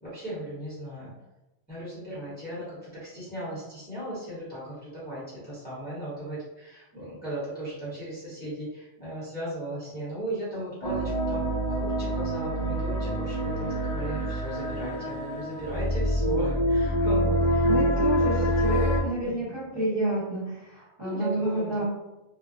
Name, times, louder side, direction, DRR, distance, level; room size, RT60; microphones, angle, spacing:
voice 1, 0.0-1.1 1.7-17.7 17.9-18.6 19.2-19.5 19.7-19.8 21.0-21.8, right 1 dB, 10° left, -11 dB, 1.1 m, -36 dB
sound 1, 10.8-19.0, equal, 55° left, 0.4 m, -26 dB
voice 2, 17.6-21.8, right 1 dB, 25° right, -11 dB, 1.1 m, -30 dB
2.7 x 2.2 x 2.5 m, 0.98 s
omnidirectional pair, 1.1 m